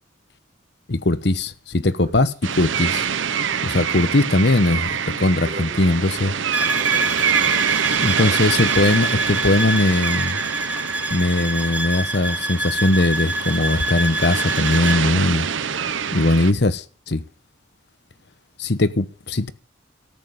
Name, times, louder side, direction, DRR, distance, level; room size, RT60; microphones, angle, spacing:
voice 1, 0.9-2.3 2.6-3.1 3.6-6.3 8.0-10.4 11.1-15.5 16.1-17.2 18.6-19.5, left 2 dB, 60° left, 1.0 m, -20 dB
sound 1, 2.4-16.5, right 7 dB, 80° right, 0.8 m, -25 dB
voice 2, 5.2-5.8 6.2-7.4 8.1-8.4, equal, 40° right, 4.7 m, -38 dB
sound 2, 6.5-15.0, right 1 dB, 10° right, 1.2 m, -26 dB
14.0 x 7.7 x 9.5 m
head